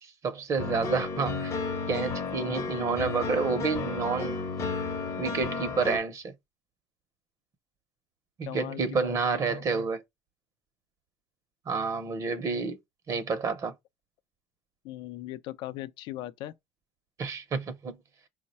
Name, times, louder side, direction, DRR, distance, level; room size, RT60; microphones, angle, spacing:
voice 1, 0.2-1.5 1.9-4.4 5.2-6.3 8.4-10.0 11.7-12.8 13.1-13.7 17.2-17.9, right 5 dB, 40° right, 0.6 m, -29 dB
sound 1, 0.6-6.0, left 4 dB, 35° left, 0.7 m, -33 dB
voice 2, 8.4-9.6 14.8-16.5, left 14 dB, 65° left, 0.4 m, -39 dB
4.5 x 2.1 x 4.1 m
supercardioid pair, 105°, 9 cm